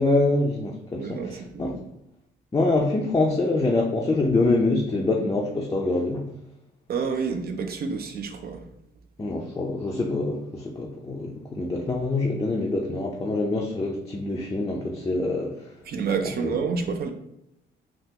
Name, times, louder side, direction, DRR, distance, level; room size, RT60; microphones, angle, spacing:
voice 1, 0.0-1.7 2.5-6.3 9.2-15.7 16.4-16.6, left 2 dB, 20° left, -1 dB, 0.5 m, -25 dB
voice 2, 1.0-1.8 6.9-8.6 15.9-17.1, right 5 dB, 50° right, 6 dB, 0.5 m, -29 dB
3.5 x 2.5 x 2.8 m, 0.83 s
cardioid pair, 90°, 20 cm